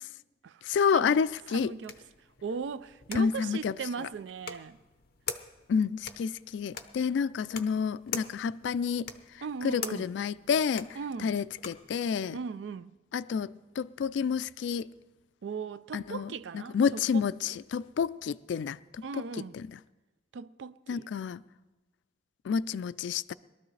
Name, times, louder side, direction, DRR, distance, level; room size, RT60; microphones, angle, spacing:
voice 1, 0.6-1.7 3.2-3.7 5.7-12.4 13.1-14.9 15.9-19.0 19.5-19.8 20.9-21.4 22.4-23.3, left 6 dB, 85° left, 0.3 m, -29 dB
sound 1, 1.2-11.9, left 7 dB, 55° left, 0.8 m, -44 dB
voice 2, 1.5-2.0 2.4-4.8 9.4-10.1 10.9-11.4 12.3-12.9 15.4-17.6 19.0-19.6 20.3-21.1, right 5 dB, 85° right, 0.4 m, -38 dB
21.5 x 13.0 x 3.2 m
head